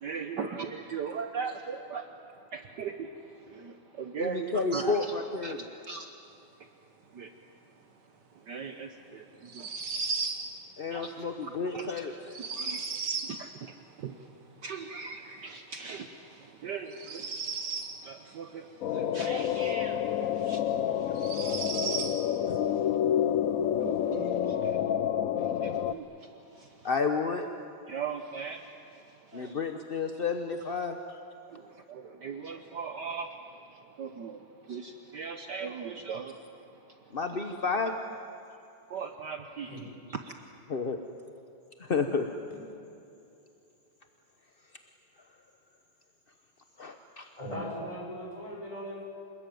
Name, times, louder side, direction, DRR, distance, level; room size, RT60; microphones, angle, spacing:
voice 1, 0.0-5.1 5.4-5.5 5.9-6.1 7.1-7.3 8.4-9.7 10.9-11.3 11.7-12.0 12.5-12.9 13.2-22.9 23.8-24.9 25.4-26.9 27.9-29.5 31.5-36.5 36.9-37.0 38.9-39.7 40.1-40.3, right 5 dB, 60° right, 7 dB, 1.4 m, -40 dB
voice 2, 4.2-5.6 10.8-12.1 22.5-22.6 26.8-27.5 29.3-31.0 37.1-38.0 40.7-41.0 41.8-42.3 46.8-47.3, left 4 dB, 45° left, 6 dB, 0.7 m, -31 dB
sound 1, 9.5-10.4 12.3-13.3 16.9-17.9 20.1-20.2 21.1-22.1, right 4 dB, 80° right, 3.2 m, -34 dB
sound 2, 18.8-25.9, left 9 dB, 85° left, 0.7 m, -28 dB
voice 3, 47.4-49.0, equal, 15° left, -3 dB, 6.7 m, -38 dB
27.0 x 20.5 x 9.3 m, 2.7 s
omnidirectional pair, 2.4 m